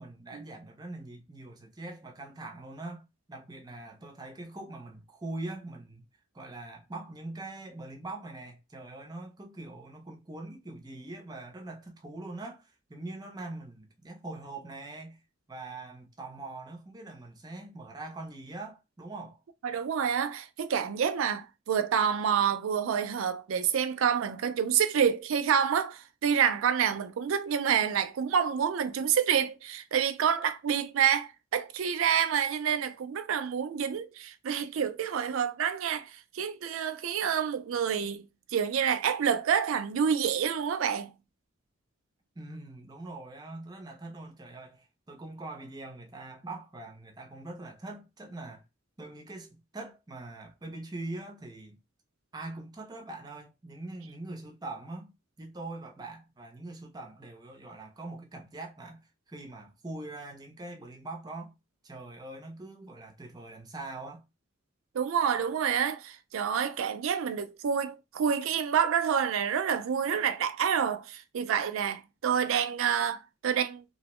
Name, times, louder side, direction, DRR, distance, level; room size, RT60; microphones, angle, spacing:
voice 1, 0.0-6.0 6.3-15.2 15.5-19.4 42.4-48.6 49.0-51.8 52.3-55.1 55.4-59.0 59.3-61.5 61.8-64.2, right 2 dB, 20° right, 0.5 m, -43 dB
voice 2, 19.6-38.2 38.5-41.1 64.9-73.8, right 8 dB, 75° right, 0.4 m, -28 dB
2.6 x 2.1 x 2.9 m
head